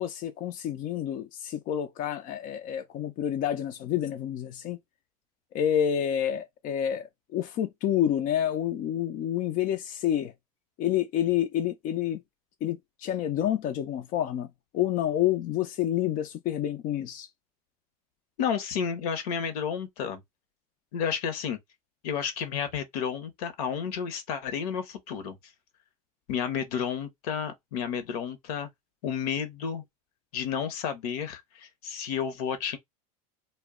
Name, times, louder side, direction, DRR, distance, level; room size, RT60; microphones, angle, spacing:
voice 1, 0.0-4.8 5.5-10.3 10.8-12.2 12.6-14.5 14.7-17.3, left 10 dB, 45° left, 0.5 m, -28 dB
voice 2, 18.4-20.2 20.9-21.6 22.0-25.4 26.3-28.7 29.0-29.8 30.3-32.8, left 7 dB, 75° left, 0.9 m, -31 dB
2.3 x 2.1 x 3.5 m
hypercardioid pair, 95°, 20 cm